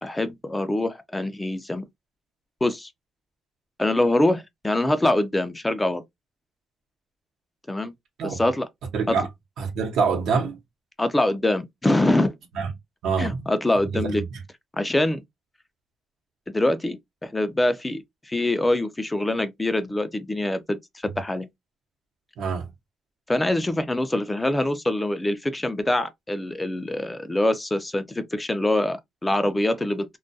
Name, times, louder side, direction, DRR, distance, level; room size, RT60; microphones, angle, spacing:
voice 1, 0.0-1.9 2.6-2.9 3.8-6.0 7.7-7.9 8.2-8.7 9.1-9.2 11.0-12.3 13.2-14.2 14.7-15.2 16.5-21.5 23.3-30.2, left 1 dB, 15° left, 0.4 m, -24 dB
voice 2, 8.9-9.3 9.6-10.6 12.5-12.7 13.0-13.5 13.7-14.4 22.4-22.7, right 5 dB, 80° right, 0.8 m, -26 dB
2.3 x 2.2 x 2.6 m
cardioid pair, 90°, 0 cm